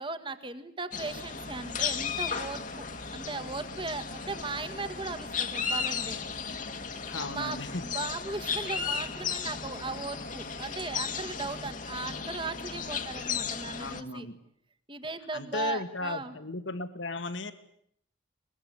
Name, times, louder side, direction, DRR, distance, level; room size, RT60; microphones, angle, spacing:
voice 1, 0.0-2.9 3.1-6.2 7.1-14.3 14.9-16.3, right 3 dB, 25° right, 10 dB, 1.8 m, -37 dB
sound 1, 0.9-14.0, left 6 dB, 40° left, 1.6 m, -35 dB
voice 2, 7.1-7.8 13.8-14.4 15.3-17.5, left 2 dB, 75° left, 10 dB, 2.1 m, -36 dB
22.5 x 22.0 x 9.8 m, 0.69 s
head